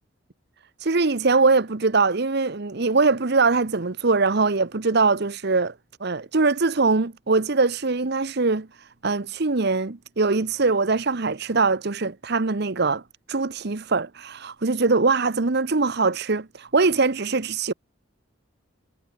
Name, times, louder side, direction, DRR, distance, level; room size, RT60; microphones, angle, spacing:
voice 1, 0.8-5.7 6.0-13.0 13.3-17.7, right 3 dB, 55° right, 1.0 m, -22 dB
head